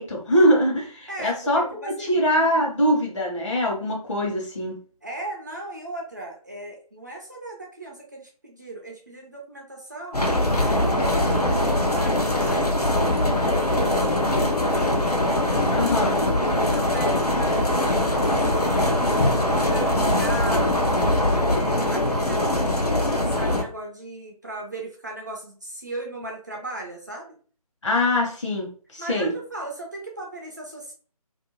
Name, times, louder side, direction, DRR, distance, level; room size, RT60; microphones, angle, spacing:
voice 1, 0.0-4.7 15.7-16.2 27.8-28.7 28.9-29.3, equal, 50° left, 0 dB, 1.1 m, -23 dB
voice 2, 1.1-2.2 5.0-10.2 11.0-12.8 13.4-15.0 15.4-16.0 16.3-20.8 21.5-27.3 29.0-30.9, right 2 dB, 30° right, 0 dB, 0.4 m, -37 dB
sound 1, 10.1-23.6, left 1 dB, 80° left, 0.8 m, -22 dB
2.7 x 2.1 x 2.6 m, 0.41 s
figure-of-eight pair, 155°, 19 cm